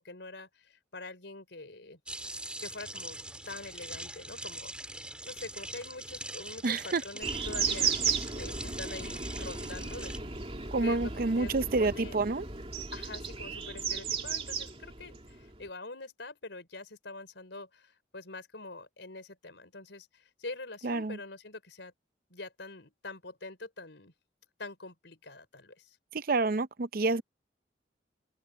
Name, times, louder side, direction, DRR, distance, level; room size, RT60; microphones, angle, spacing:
voice 1, 0.0-2.0 2.6-3.2 3.5-4.9 5.2-10.4 10.8-11.1 11.4-12.2 12.9-21.9 22.3-24.1 24.6-26.0, left 3 dB, 75° left, 4.6 m, -45 dB
sound 1, 2.1-10.2, right 1 dB, 5° right, 3.1 m, -42 dB
voice 2, 6.6-7.0 10.7-12.4 20.8-21.2 26.1-27.2, right 3 dB, 50° right, 0.6 m, -28 dB
sound 2, 7.2-15.7, right 5 dB, 30° right, 2.7 m, -35 dB
open air
head